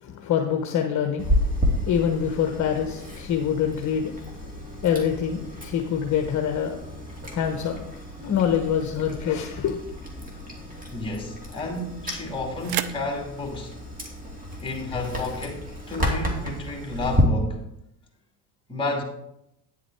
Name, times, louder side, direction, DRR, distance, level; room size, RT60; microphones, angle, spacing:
voice 1, 0.0-1.3 1.8-4.1 4.8-6.8 7.3-7.9 8.2-9.8, left 8 dB, 35° left, 1.1 m, -25 dB
Chewing mastication, 1.2-17.2, equal, 15° right, 2.5 m, -31 dB
sound 1, 10.3-16.3, right 12 dB, 50° right, 0.8 m, -40 dB
voice 2, 10.9-13.8 14.6-17.6 18.7-19.0, left 2 dB, 10° left, 2.5 m, -31 dB
9.8 x 7.7 x 4.6 m
supercardioid pair, 105°, 48 cm